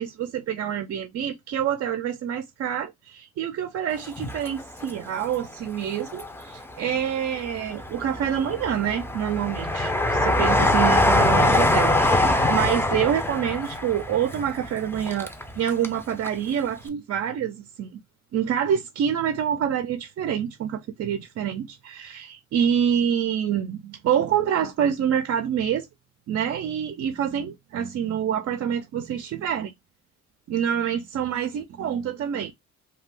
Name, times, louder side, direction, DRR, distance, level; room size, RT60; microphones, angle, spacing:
voice 1, 0.0-17.9 18.3-25.9 26.3-29.7 30.5-32.5, right 9 dB, 55° right, 0.5 m, -27 dB
Train, 4.0-5.3 5.7-6.7 7.2-16.0 16.2-16.3, left 1 dB, 10° left, 0.5 m, -23 dB
2.5 x 2.3 x 3.3 m
cardioid pair, 90°, 30 cm